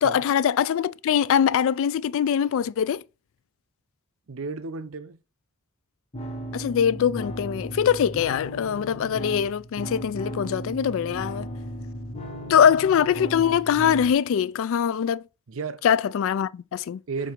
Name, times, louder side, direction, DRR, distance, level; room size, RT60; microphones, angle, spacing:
voice 1, 0.0-3.0 6.5-11.5 12.5-15.2 15.8-17.0, left 8 dB, 65° left, 0.3 m, -22 dB
voice 2, 4.3-5.2 12.2-12.7 15.5-15.8 17.1-17.3, right 4 dB, 70° right, 0.6 m, -34 dB
sound 1, 6.1-14.1, right 1 dB, 30° left, 1.2 m, -36 dB
7.5 x 2.7 x 5.0 m
head